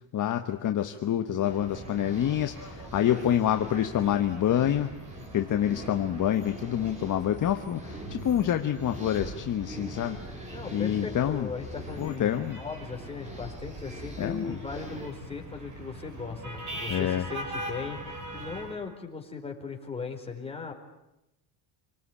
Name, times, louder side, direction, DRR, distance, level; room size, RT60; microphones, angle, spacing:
voice 1, 0.1-4.9 5.3-10.4 10.7-11.5 12.0-12.6 14.2-14.6 16.9-17.3, left 10 dB, 40° left, 6 dB, 1.3 m, -27 dB
sound 1, 1.4-15.1, right 1 dB, 15° right, 3.7 m, -44 dB
sound 2, 1.6-18.8, right 1 dB, 35° right, 6.8 m, -42 dB
voice 2, 10.5-20.7, left 4 dB, 10° left, 2 dB, 4.5 m, -38 dB
27.5 x 19.5 x 9.9 m, 0.89 s
cardioid pair, 140°, 49 cm